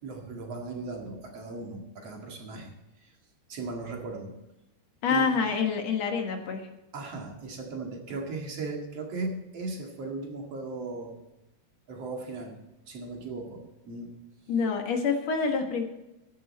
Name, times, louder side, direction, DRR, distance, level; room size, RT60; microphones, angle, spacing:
voice 1, 0.0-2.8 3.0-3.1 3.5-4.3 5.1-5.3 6.9-11.2 11.9-12.6 12.9-14.1, right 3 dB, 60° right, 1 dB, 3.1 m, -37 dB
voice 2, 5.0-6.7 14.5-15.8, left 5 dB, 65° left, 4 dB, 2.6 m, -27 dB
14.5 x 11.0 x 4.2 m, 0.95 s
omnidirectional pair, 3.3 m